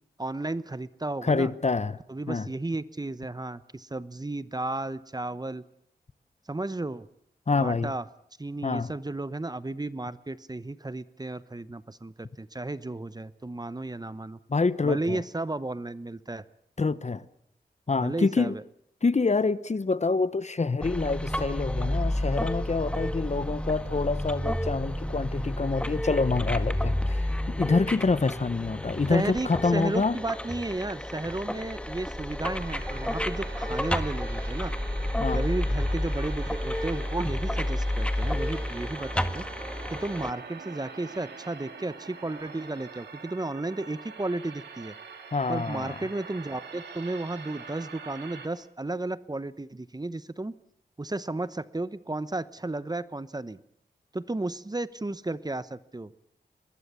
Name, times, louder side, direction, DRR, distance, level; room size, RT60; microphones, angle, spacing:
voice 1, 0.2-1.5 2.1-5.6 6.5-7.1 7.6-8.0 8.4-14.4 14.8-16.4 18.0-18.6 29.1-34.7 35.3-39.4 39.9-45.0 45.5-50.5 51.0-53.6 54.1-56.1, right 2 dB, 25° right, 1.0 m, -33 dB
voice 2, 1.2-2.0 2.3-2.5 7.5-7.9 8.6-8.9 14.5-15.2 16.8-17.2 17.9-18.6 19.0-30.1 35.2-35.4 45.3-46.0, left 4 dB, 40° left, 1.0 m, -26 dB
sound 1, 20.8-40.3, left 1 dB, 5° left, 1.8 m, -30 dB
sound 2, 32.6-48.5, right 5 dB, 85° right, 3.0 m, -45 dB
24.5 x 20.5 x 7.0 m
cardioid pair, 45°, 17 cm